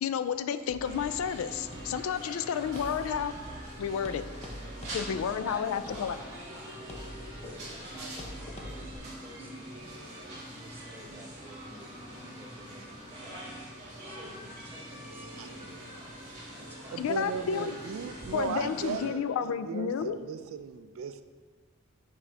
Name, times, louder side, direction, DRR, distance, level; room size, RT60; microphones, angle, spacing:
voice 1, 0.0-3.3 3.8-4.2 4.9-6.2 17.0-17.8 18.3-20.2, left 7 dB, 80° left, 12 dB, 0.3 m, -31 dB
sound 1, 0.7-9.0, equal, 30° left, 0.7 m, -46 dB
sound 2, 0.8-19.1, right 1 dB, 35° right, 1.8 m, -44 dB
voice 2, 2.2-2.5 4.9-17.7, equal, 10° right, -2 dB, 0.9 m, -51 dB
voice 3, 16.9-21.2, right 5 dB, 80° right, 10 dB, 0.3 m, -36 dB
6.1 x 4.8 x 3.3 m, 1.4 s
head